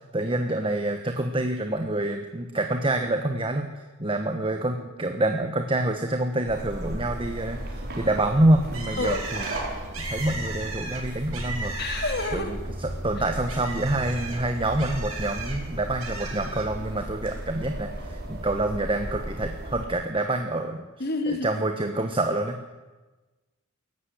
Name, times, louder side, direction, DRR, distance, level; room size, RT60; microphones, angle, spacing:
voice 1, 0.1-3.7 4.0-9.5 10.1-11.7 12.3-20.8 21.3-22.6, right 1 dB, 25° right, 5 dB, 1.2 m, -27 dB
sound 1, 6.5-19.9, right 1 dB, 50° right, 4.4 m, -35 dB
Bird, 8.7-12.6 12.9-15.6 16.0-16.7, right 3 dB, 90° right, 7.4 m, -36 dB
voice 2, 11.8-12.6 21.0-21.5, left 2 dB, 50° left, 6 dB, 2.4 m, -28 dB
18.0 x 14.5 x 10.0 m, 1.2 s
head